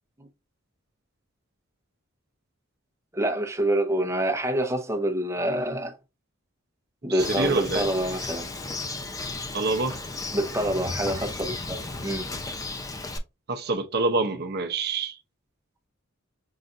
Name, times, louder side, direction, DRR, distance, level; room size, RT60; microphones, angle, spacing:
voice 1, 3.1-6.0 7.0-8.5 10.3-12.3, right 1 dB, 15° right, 0.8 m, -27 dB
voice 2, 7.1-7.9 9.5-10.0 13.5-15.2, right 3 dB, 50° right, 0.7 m, -26 dB
Bird, 7.2-13.2, left 3 dB, 15° left, 0.5 m, -34 dB
5.6 x 2.5 x 2.5 m
head